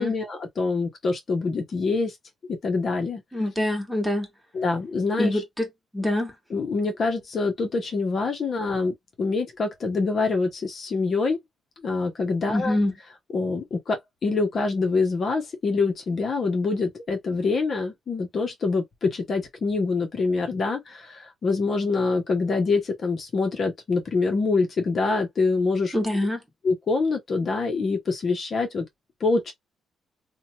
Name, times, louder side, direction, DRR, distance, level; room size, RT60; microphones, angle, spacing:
voice 1, 0.0-2.2 2.5-3.2 4.5-5.4 6.5-11.4 11.8-12.8 13.3-25.9 26.6-28.8 29.2-29.5, left 4 dB, 45° left, 0.8 m, -25 dB
voice 2, 3.3-4.3 5.2-5.7 5.9-6.3 12.5-12.9 25.9-26.4, left 1 dB, 5° right, 1.2 m, -25 dB
2.8 x 2.2 x 2.7 m
cardioid pair, 95°, 0 cm